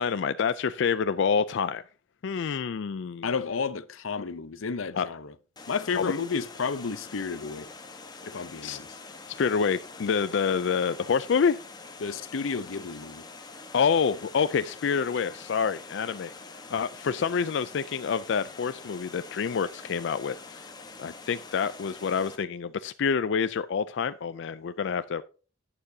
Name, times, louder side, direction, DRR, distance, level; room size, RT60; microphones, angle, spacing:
voice 1, 0.0-1.8 2.2-3.3 5.0-5.1 5.9-6.1 8.6-8.8 9.4-11.6 13.7-16.3 16.7-20.7 21.0-25.2, left 6 dB, 60° left, 0.4 m, -27 dB
voice 2, 3.2-5.3 5.7-7.7 8.2-8.9 12.0-13.2, left 5 dB, 90° left, 0.7 m, -32 dB
Water, 5.6-22.4, left 3 dB, 20° left, 1.2 m, -45 dB
11.5 x 8.8 x 2.7 m
head